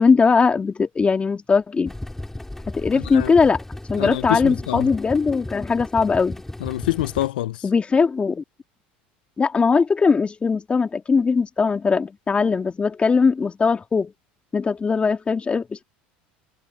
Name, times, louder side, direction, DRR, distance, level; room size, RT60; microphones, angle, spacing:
voice 1, 0.0-1.9 2.7-3.6 3.9-6.4 7.6-8.4 9.4-14.1 14.5-15.8, left 5 dB, 25° left, 2.5 m, -20 dB
sound 1, 1.9-7.3, left 1 dB, 5° left, 4.7 m, -35 dB
voice 2, 2.9-3.3 4.0-4.9 6.6-7.7, left 16 dB, 85° left, 1.1 m, -26 dB
hypercardioid pair, 90°, 5 cm